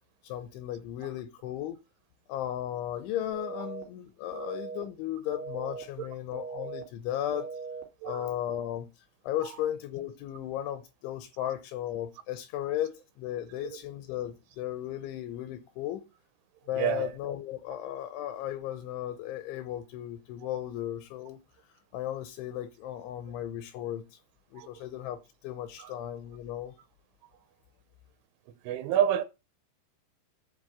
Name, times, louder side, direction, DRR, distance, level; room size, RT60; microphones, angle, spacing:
voice 1, 0.2-1.8 2.3-7.5 8.0-16.0 16.7-21.4 21.9-24.2 24.5-26.8, left 12 dB, 80° left, 2.8 m, -35 dB
sound 1, 3.3-3.8 4.3-4.8 5.3-5.8 6.3-6.8 7.3-7.8, right 4 dB, 60° left, 0.7 m, -39 dB
voice 2, 16.7-17.1 24.5-24.7 25.8-26.0 28.5-29.2, right 10 dB, 80° right, 2.9 m, -30 dB
11.0 x 3.8 x 7.4 m
omnidirectional pair, 6.0 m